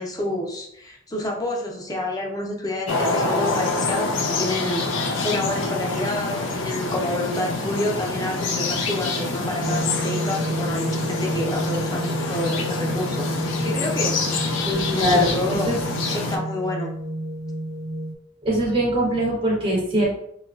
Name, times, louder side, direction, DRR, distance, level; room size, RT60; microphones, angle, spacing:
voice 1, 0.0-14.2 14.9-15.7 16.1-16.9, left 1 dB, 20° left, 0 dB, 0.5 m, -29 dB
sound 1, 2.9-16.4, left 3 dB, 80° left, 0.5 m, -26 dB
sound 2, 9.6-18.1, right 1 dB, 80° right, 0.5 m, -29 dB
voice 2, 14.6-15.8 18.4-20.0, equal, 30° right, -2 dB, 0.6 m, -22 dB
4.0 x 2.2 x 2.3 m, 0.74 s
head